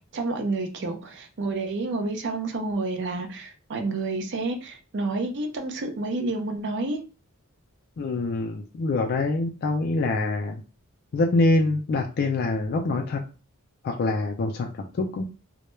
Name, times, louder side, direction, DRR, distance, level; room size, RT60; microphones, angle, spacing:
voice 1, 0.1-7.0, right 2 dB, 55° right, 5 dB, 0.5 m, -29 dB
voice 2, 8.0-10.6 11.1-13.2 13.8-15.2, left 2 dB, 45° left, 2 dB, 0.3 m, -25 dB
2.2 x 2.1 x 3.0 m, 0.33 s
head